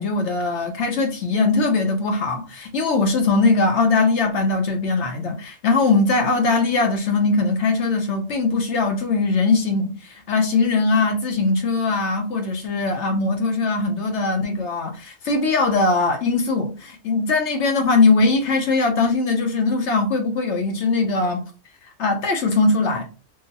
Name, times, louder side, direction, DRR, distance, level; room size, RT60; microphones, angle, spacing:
voice 1, 0.0-21.4 22.0-23.1, left 3 dB, 65° left, 0.8 m, -20 dB
3.8 x 2.0 x 2.7 m
omnidirectional pair, 1.5 m